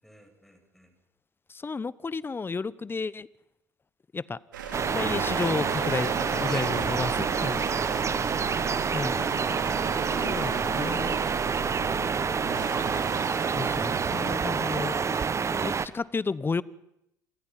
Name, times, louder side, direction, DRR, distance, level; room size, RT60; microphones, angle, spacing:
voice 1, 0.0-0.9, equal, ahead, 4 dB, 7.8 m, -52 dB
voice 2, 1.5-3.3 4.1-4.4 4.9-7.6 8.9-9.3 10.2-11.2 11.9-12.1 13.5-15.0 15.5-16.6, left 4 dB, 20° left, 20 dB, 1.0 m, -32 dB
sound 1, 4.5-15.4, right 6 dB, 85° right, 5.2 m, -37 dB
sound 2, 4.7-15.9, right 5 dB, 30° right, 1.2 m, -28 dB
28.0 x 26.0 x 5.8 m, 0.83 s
hypercardioid pair, 70°, 10 cm